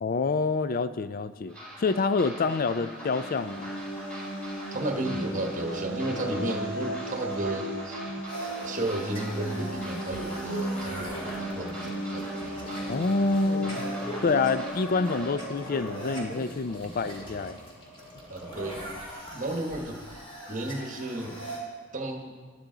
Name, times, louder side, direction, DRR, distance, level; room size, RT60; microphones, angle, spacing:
voice 1, 0.0-3.7 12.9-13.8 14.2-17.6, left 4 dB, 40° left, 13 dB, 0.4 m, -27 dB
sound 1, 1.5-15.3, right 1 dB, 5° left, 3.5 m, -43 dB
sound 2, 2.7-16.3, right 1 dB, 75° left, 2.3 m, -36 dB
voice 2, 4.7-8.0 8.4-12.6 16.8-16.9 18.3-18.9 19.3-20.0 20.5-21.4 21.9-22.3, right 1 dB, 35° right, 3 dB, 1.2 m, -33 dB
sound 3, 8.3-21.6, right 1 dB, 25° left, 2.2 m, -40 dB
12.0 x 12.0 x 3.9 m, 1.5 s
head